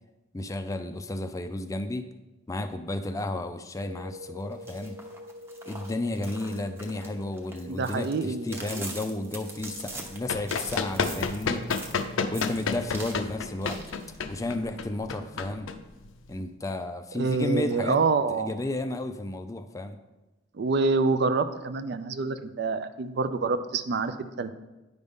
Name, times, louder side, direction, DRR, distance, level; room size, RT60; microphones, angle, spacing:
voice 1, 0.3-2.1 2.5-5.0 5.7-11.6 12.3-13.8 14.3-15.7 16.3-18.0 18.3-20.0, left 2 dB, 15° left, 8 dB, 0.3 m, -32 dB
sound 1, 3.8-10.7, left 1 dB, 75° right, 1.4 m, -47 dB
sound 2, 4.5-12.0 12.3-13.2 13.6-14.2, right 2 dB, 10° right, 0.7 m, -42 dB
voice 2, 7.7-8.9 17.1-18.5 20.5-24.5, right 4 dB, 55° right, 11 dB, 0.4 m, -27 dB
Run, 9.9-16.4, left 5 dB, 90° left, 0.5 m, -31 dB
9.5 x 5.3 x 3.6 m, 1.1 s
head